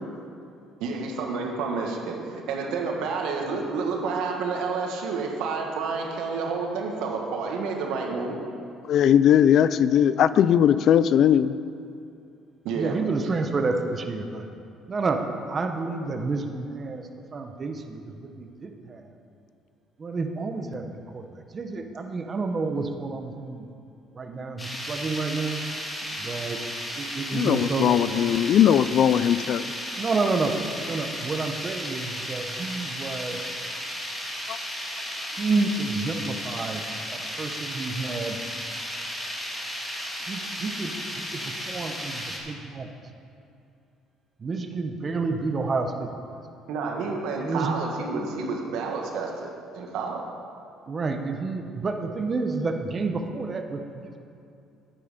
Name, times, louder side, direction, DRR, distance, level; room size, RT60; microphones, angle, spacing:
voice 1, 0.8-8.4 12.6-13.0 35.0-35.1 46.7-50.2, right 4 dB, 80° right, 1 dB, 1.8 m, -29 dB
voice 2, 8.9-11.5 27.3-29.7, left 9 dB, 60° left, 15 dB, 0.4 m, -19 dB
voice 3, 12.8-14.5 14.9-19.1 20.0-21.3 21.5-23.7 24.1-25.6 26.2-26.6 27.0-28.0 30.0-30.5 30.9-33.4 35.4-36.8 37.1-38.4 40.3-42.9 44.4-46.1 47.4-47.7 50.9-54.2, right 3 dB, 35° right, 5 dB, 0.9 m, -29 dB
sound 1, 24.6-42.4, equal, 15° left, 2.1 m, -34 dB
10.0 x 9.5 x 5.2 m, 2.6 s
cardioid pair, 105°, 0 cm